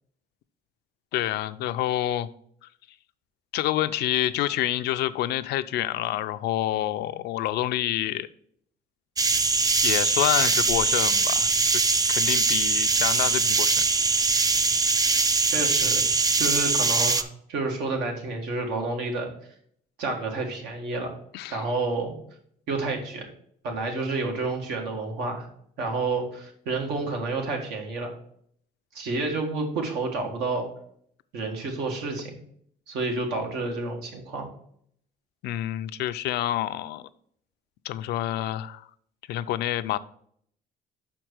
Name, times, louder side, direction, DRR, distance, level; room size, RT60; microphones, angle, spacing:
voice 1, 1.1-2.3 3.5-8.3 9.8-11.5 12.1-13.9 21.3-21.6 35.4-37.1 37.8-38.9 39.3-40.0, left 13 dB, 75° left, 13 dB, 0.4 m, -27 dB
sound 1, 9.2-17.2, right 4 dB, 20° right, 0.5 m, -22 dB
voice 2, 15.5-16.0 16.4-19.3 20.0-21.2 21.5-22.1 22.7-23.3 23.6-25.5 25.8-28.1 28.9-30.7 31.3-32.4 32.9-34.5, right 3 dB, 80° right, 2 dB, 1.7 m, -29 dB
5.7 x 4.5 x 6.2 m, 0.66 s
cardioid pair, 110°, 17 cm